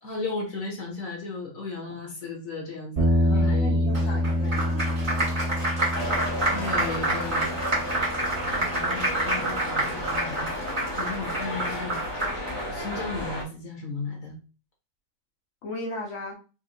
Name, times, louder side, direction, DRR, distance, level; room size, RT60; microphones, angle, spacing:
voice 1, 0.0-4.3 6.4-7.5 8.5-10.5 11.0-12.0 12.7-14.3, left 3 dB, 85° left, 0 dB, 1.9 m, -35 dB
sound 1, 3.0-11.3, equal, 50° right, 1.7 m, -28 dB
voice 2, 3.3-4.7 15.6-16.3, left 1 dB, 65° left, 0 dB, 1.2 m, -36 dB
Applause, 3.9-12.7, right 2 dB, 30° right, 1.6 m, -28 dB
sound 2, 5.9-13.4, left 1 dB, 20° left, 0.9 m, -34 dB
4.5 x 3.5 x 2.4 m, 0.33 s
omnidirectional pair, 1.4 m